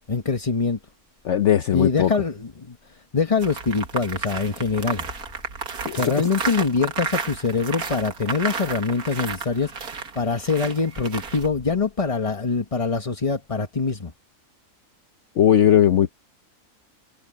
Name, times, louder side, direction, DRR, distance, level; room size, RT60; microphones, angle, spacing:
voice 1, 0.1-0.8 1.7-5.1 5.9-14.1, left 4 dB, 25° left, 1.1 m, -24 dB
voice 2, 1.2-2.1 5.8-6.1 15.4-16.1, left 10 dB, 60° left, 1.0 m, -18 dB
sound 1, 3.4-11.5, right 5 dB, 80° right, 2.3 m, -32 dB
omnidirectional pair, 1.6 m